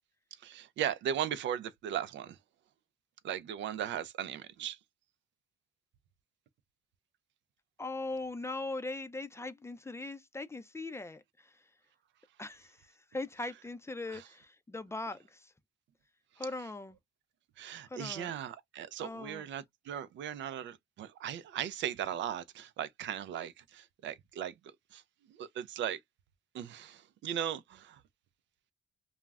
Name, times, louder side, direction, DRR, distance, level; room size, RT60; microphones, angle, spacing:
voice 1, 0.4-2.4 3.2-4.8 14.1-14.2 17.6-24.5 24.9-25.0 25.3-26.0 26.5-28.0, right 10 dB, 70° right, 0.4 m, -37 dB
voice 2, 7.8-11.6 12.4-15.5 16.4-17.0 17.9-18.3 19.0-19.4, left 2 dB, 15° left, 0.4 m, -40 dB
2.3 x 2.0 x 3.3 m
cardioid pair, 90°, 20 cm